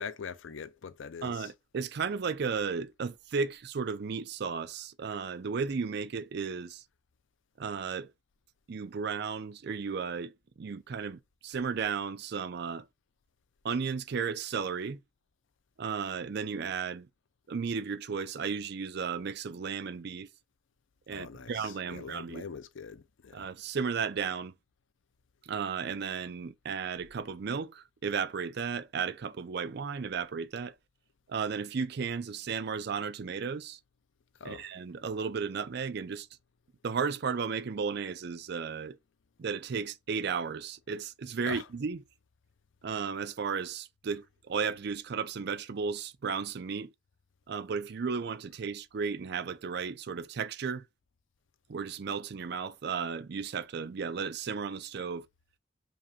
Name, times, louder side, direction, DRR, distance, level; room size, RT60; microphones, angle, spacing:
voice 1, 0.0-1.5 21.1-23.5 34.4-34.7 41.4-41.7, left 6 dB, 80° left, 0.5 m, -43 dB
voice 2, 1.2-6.8 7.6-8.1 8.7-12.8 13.6-15.0 15.8-17.1 17.5-20.3 21.1-22.4 23.3-24.5 25.5-30.7 31.3-33.8 34.4-36.3 36.8-39.0 39.4-42.0 42.8-46.9 47.5-50.8 51.7-55.3, right 5 dB, 60° right, 0.4 m, -34 dB
5.2 x 2.2 x 2.7 m
head